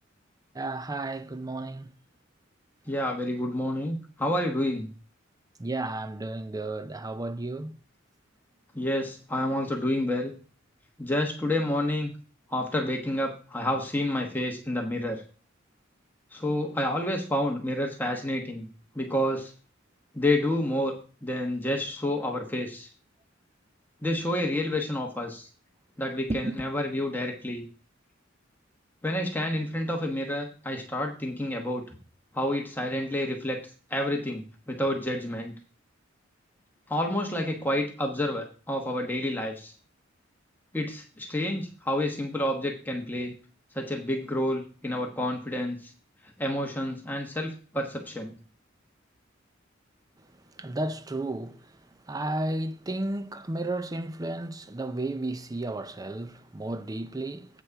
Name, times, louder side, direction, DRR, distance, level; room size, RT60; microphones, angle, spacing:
voice 1, 0.5-1.9 5.6-7.8 26.3-26.7 50.6-51.6 52.1-57.5, right 2 dB, 20° right, 0.5 m, -33 dB
voice 2, 2.9-4.9 8.7-10.3 11.0-12.1 12.5-15.2 16.3-18.7 18.9-19.5 20.1-20.9 21.2-22.9 24.0-25.5 26.0-27.6 29.0-31.8 32.3-33.6 33.9-35.5 36.9-39.7 40.7-43.3 43.7-45.9 46.4-48.3, left 1 dB, 10° left, 1.2 m, -29 dB
8.4 x 6.2 x 4.7 m
head